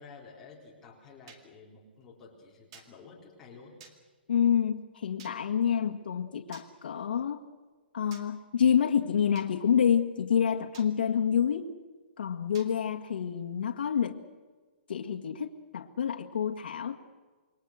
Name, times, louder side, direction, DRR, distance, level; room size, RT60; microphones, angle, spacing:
voice 1, 0.0-3.7, left 4 dB, 10° left, -4 dB, 3.8 m, -51 dB
sound 1, 1.3-1.4 2.7-2.9 3.8-4.0 5.2-5.4 6.5-6.7 8.1-8.3 9.3-9.5 10.7-10.9 12.5-12.7, right 6 dB, 30° right, 2.1 m, -51 dB
voice 2, 4.3-7.4 7.9-11.7 12.2-14.2 14.9-17.0, left 8 dB, 70° left, 2 dB, 1.9 m, -28 dB
27.5 x 22.5 x 6.6 m, 1.4 s
hypercardioid pair, 180°, 6 cm